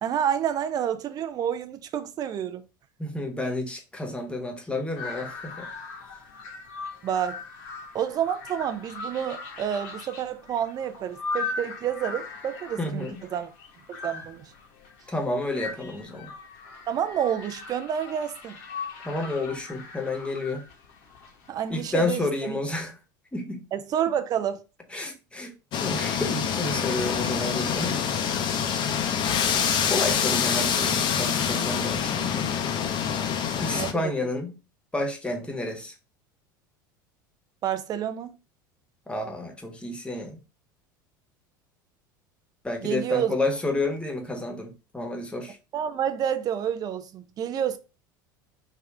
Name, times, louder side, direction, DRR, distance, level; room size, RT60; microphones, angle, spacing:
voice 1, 0.0-2.6 7.0-7.4 7.9-13.0 13.3-13.5 13.9-14.5 16.9-18.5 21.5-22.6 23.7-24.6 33.7-33.9 37.6-38.3 42.8-43.4 45.7-47.8, right 9 dB, 35° right, 0.5 m, -29 dB
voice 2, 3.0-5.7 12.8-13.3 15.1-16.3 19.0-20.6 21.7-23.0 23.3-23.7 24.9-25.5 25.8-28.2 29.8-32.5 33.6-34.6 34.9-35.9 39.1-40.4 42.6-45.6, left 2 dB, 10° left, 1.0 m, -30 dB
sound 1, 5.0-22.5, left 4 dB, 60° left, 0.9 m, -39 dB
sound 2, 25.7-33.9, left 7 dB, 45° left, 0.6 m, -26 dB
3.4 x 2.4 x 3.3 m
hypercardioid pair, 75°, 11 cm